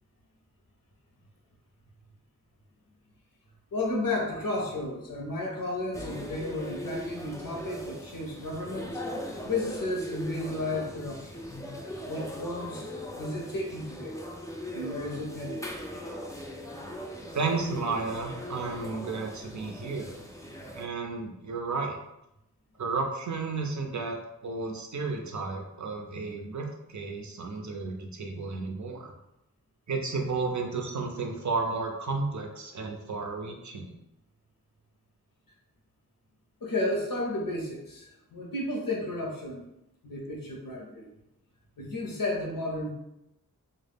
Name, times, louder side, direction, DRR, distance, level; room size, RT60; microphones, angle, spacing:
voice 1, 3.7-11.5 12.1-12.9 13.2-14.2 14.7-15.7 36.6-39.6 40.0-41.1 41.8-42.9, left 2 dB, 90° left, 0 dB, 0.6 m, -33 dB
sound 1, 5.9-20.9, equal, 10° left, 0.3 m, -39 dB
voice 2, 17.3-20.2 20.7-22.0 22.8-29.1 29.9-33.9, right 4 dB, 60° right, 2 dB, 0.5 m, -33 dB
2.1 x 2.0 x 3.3 m, 0.87 s
wide cardioid pair, 60°, 33 cm